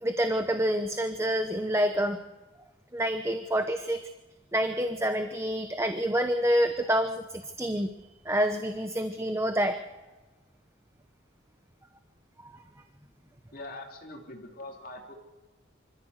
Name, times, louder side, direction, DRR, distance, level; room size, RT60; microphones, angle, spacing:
voice 1, 0.0-2.2 2.9-4.0 4.5-7.9 8.2-9.8 12.4-12.5, equal, 15° right, 8 dB, 0.9 m, -27 dB
voice 2, 13.5-15.1, left 2 dB, 45° left, 2 dB, 3.3 m, -43 dB
26.0 x 14.5 x 8.0 m, 1.2 s
head